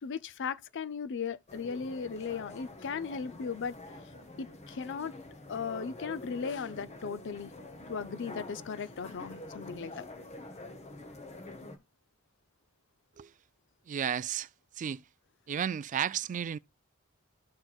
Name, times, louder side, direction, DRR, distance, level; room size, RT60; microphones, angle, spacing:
voice 1, 0.0-3.8 4.4-5.1 5.5-7.5 7.9-10.1, left 6 dB, 55° left, 0.5 m, -37 dB
sound 1, 1.5-11.8, left 2 dB, 30° left, 0.9 m, -46 dB
voice 2, 13.9-14.5 14.8-15.0 15.5-16.6, right 8 dB, 35° right, 0.3 m, -33 dB
13.0 x 4.5 x 2.3 m
head